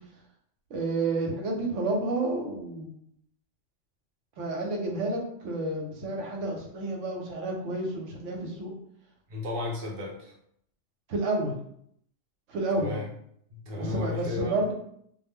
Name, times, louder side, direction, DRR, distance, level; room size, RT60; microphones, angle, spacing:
voice 1, 0.7-2.9 4.4-8.7 11.1-11.5 12.5-13.0 13.7-14.7, right 2 dB, 85° right, 1 dB, 1.0 m, -30 dB
voice 2, 9.3-10.3 12.8-13.1 13.5-14.6, left 2 dB, 60° right, -2 dB, 0.8 m, -33 dB
2.1 x 2.0 x 3.4 m, 0.69 s
omnidirectional pair, 1.2 m